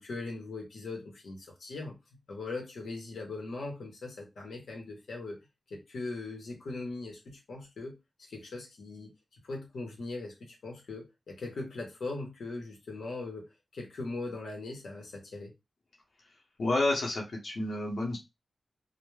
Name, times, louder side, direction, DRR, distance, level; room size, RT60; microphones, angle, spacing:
voice 1, 0.0-1.9 2.3-5.4 5.7-7.9 8.3-9.1 9.4-15.5, left 3 dB, 90° left, 0.8 m, -40 dB
voice 2, 16.6-18.2, left 2 dB, 60° left, 0.7 m, -30 dB
2.2 x 2.0 x 3.1 m
wide cardioid pair, 140°, 0 cm